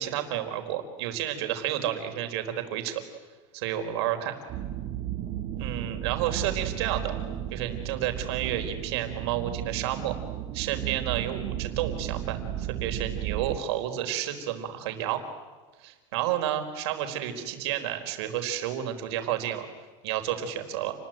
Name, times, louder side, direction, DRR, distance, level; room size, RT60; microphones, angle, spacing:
voice 1, 0.0-3.0 3.5-4.3 5.6-7.1 7.5-10.1 10.5-15.2 15.8-19.7 20.0-20.9, right 11 dB, 60° right, 6 dB, 4.4 m, -31 dB
sound 1, 4.5-13.6, right 11 dB, 35° right, 2.7 m, -34 dB
29.5 x 21.5 x 9.2 m, 1.3 s
supercardioid pair, 170°, 16 cm